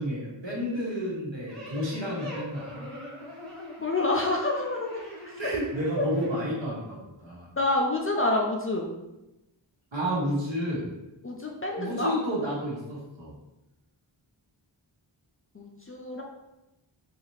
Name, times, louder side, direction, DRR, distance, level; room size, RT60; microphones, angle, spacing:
voice 1, 0.0-2.8 5.4-7.5 9.9-10.8 11.8-13.3, equal, 65° right, -5 dB, 1.1 m, -31 dB
sound 1, 1.5-6.3, left 1 dB, ahead, 0.9 m, -43 dB
voice 2, 3.8-4.9 5.2-5.5 7.6-8.9 11.2-12.1 15.5-16.2, left 2 dB, 30° left, -1 dB, 0.4 m, -27 dB
2.7 x 2.4 x 3.0 m, 0.97 s
wide cardioid pair, 55°, 47 cm